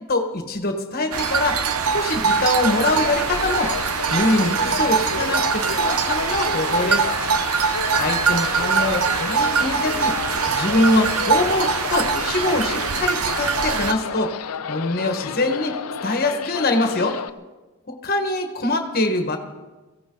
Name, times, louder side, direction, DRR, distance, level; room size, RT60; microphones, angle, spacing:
voice 1, 0.1-1.6 1.9-3.7 4.1-7.0 8.0-10.2 10.5-14.3 14.7-17.2 17.9-19.4, left 2 dB, 40° left, 5 dB, 1.5 m, -23 dB
sound 1, 1.1-13.9, right 5 dB, 75° right, 0.8 m, -23 dB
sound 2, 2.6-17.3, left 7 dB, 80° left, 0.5 m, -31 dB
23.0 x 16.0 x 3.9 m, 1.2 s
head